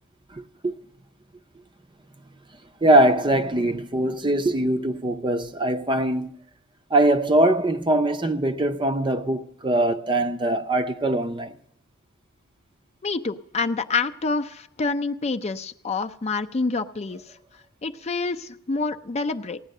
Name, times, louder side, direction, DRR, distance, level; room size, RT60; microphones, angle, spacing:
voice 1, 0.3-0.8 2.8-6.3 6.9-11.6, right 1 dB, 20° right, 0.6 m, -22 dB
voice 2, 13.0-17.4 17.8-19.6, left 4 dB, 30° left, 0.5 m, -27 dB
16.5 x 9.9 x 6.6 m
head